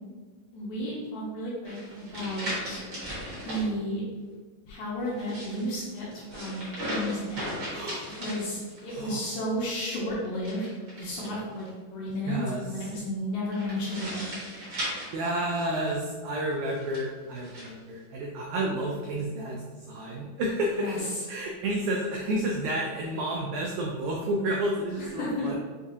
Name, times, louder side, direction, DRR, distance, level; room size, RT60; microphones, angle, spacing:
voice 1, 0.5-2.8 3.4-4.0 4.7-7.5 8.2-10.7 10.9-14.4 20.7-21.2 25.0-25.5, equal, 75° left, -5 dB, 1.8 m, -33 dB
sound 1, 1.6-3.7 5.1-9.0 10.4-11.7 13.5-15.9 16.7-17.7, equal, 50° right, 1.4 m, -37 dB
voice 2, 7.7-8.1 8.9-9.2 12.3-12.8 15.1-25.6, right 1 dB, 90° right, -1 dB, 1.7 m, -31 dB
6.6 x 2.4 x 2.7 m, 1.4 s
omnidirectional pair, 4.0 m